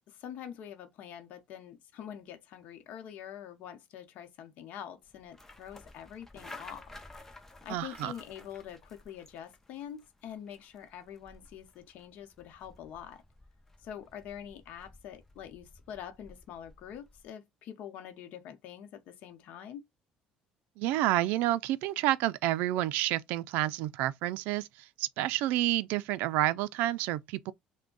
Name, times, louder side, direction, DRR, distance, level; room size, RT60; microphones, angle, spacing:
voice 1, 0.1-6.9 7.3-13.2 13.8-19.9, left 9 dB, 65° left, 0.8 m, -45 dB
sound 1, 5.0-17.3, left 2 dB, 15° left, 0.7 m, -54 dB
voice 2, 7.7-8.1 20.8-24.7 25.0-27.5, right 15 dB, 80° right, 0.3 m, -29 dB
3.4 x 2.1 x 3.8 m
cardioid pair, 110°, 3 cm